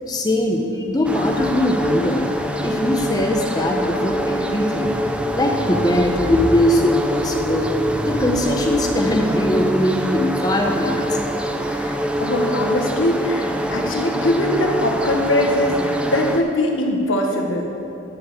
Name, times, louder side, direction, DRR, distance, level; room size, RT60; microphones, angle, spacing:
voice 1, 0.1-2.3 2.6-5.0 5.3-11.2, left 1 dB, 20° left, 1 dB, 0.9 m, -21 dB
sound 1, 1.0-16.4, right 1 dB, 5° right, 0.4 m, -24 dB
sound 2, 4.8-9.6, equal, 45° left, 1.4 m, -31 dB
voice 2, 11.7-17.7, left 1 dB, 80° left, 1 dB, 1.4 m, -22 dB
11.5 x 5.5 x 7.3 m, 2.7 s
head